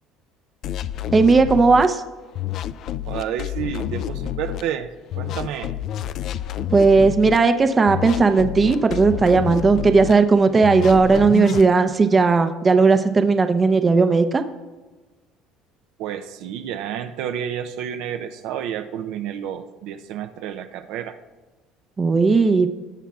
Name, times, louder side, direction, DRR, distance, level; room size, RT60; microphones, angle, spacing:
sound 1, 0.6-1.9 2.3-4.6 5.1-7.4 7.9-10.1 10.6-11.7, left 11 dB, 55° left, 0.3 m, -29 dB
voice 1, 1.1-2.0 6.7-14.4 22.0-22.7, right 4 dB, 25° right, 8 dB, 0.6 m, -16 dB
voice 2, 3.0-5.7 16.0-21.2, right 9 dB, 75° right, 7 dB, 0.5 m, -30 dB
17.5 x 7.1 x 2.4 m, 1.2 s
cardioid pair, 115°, 0 cm